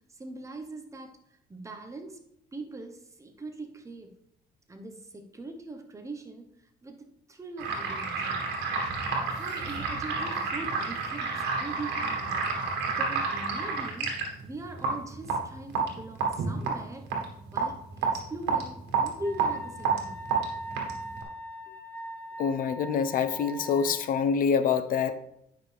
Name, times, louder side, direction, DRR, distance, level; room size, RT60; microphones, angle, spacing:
voice 1, 0.1-2.2 2.5-4.1 4.7-6.5 6.8-8.5 9.4-12.4 12.9-14.2 14.4-17.1 17.5-17.8 18.0-20.2 21.7-21.8, right 2 dB, 20° right, 4 dB, 1.1 m, -41 dB
sound 1, 7.6-21.2, right 4 dB, 85° right, 1.9 m, -30 dB
Wind instrument woodwind instrument, 19.2-24.1, right 1 dB, 10° left, 0.8 m, -41 dB
voice 2, 22.4-25.1, left 6 dB, 55° left, 11 dB, 0.7 m, -26 dB
9.6 x 5.8 x 3.5 m, 0.77 s
cardioid pair, 110°, 17 cm